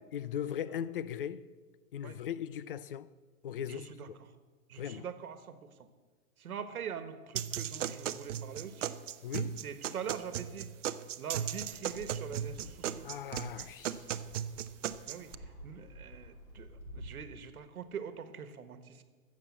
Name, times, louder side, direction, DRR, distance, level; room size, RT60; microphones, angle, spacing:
voice 1, 0.1-1.4 1.9-3.1 3.4-3.9 4.8-5.1 9.2-9.6 13.0-14.0, left 9 dB, 40° left, 0.4 m, -38 dB
voice 2, 3.7-4.1 4.7-5.7 6.4-9.0 9.6-10.7 11.2-13.1 15.1-15.3 15.6-19.0, right 7 dB, 90° right, 1.4 m, -43 dB
sound 1, 7.4-15.3, right 9 dB, 60° right, 0.7 m, -37 dB
Fixed-wing aircraft airplane, 11.6-17.1, equal, 75° left, 4.5 m, -51 dB
13.5 x 7.2 x 8.4 m
hypercardioid pair, 160°, 42 cm